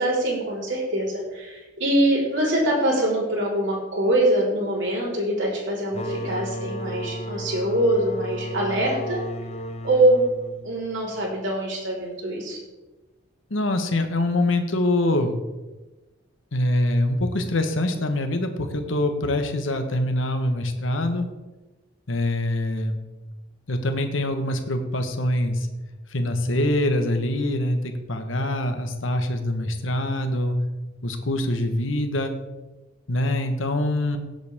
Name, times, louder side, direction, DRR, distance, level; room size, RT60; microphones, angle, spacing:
voice 1, 0.0-9.2 9.8-10.3 10.6-12.6, right 1 dB, 65° right, -5 dB, 4.2 m, -23 dB
sound 1, 5.9-11.4, equal, 35° left, 0.8 m, -34 dB
voice 2, 13.5-15.4 16.5-21.2 22.1-23.0 23.7-25.7 26.1-30.6 31.0-32.3 33.1-34.2, left 1 dB, 80° left, 6 dB, 1.3 m, -24 dB
17.0 x 8.0 x 3.6 m, 1.1 s
head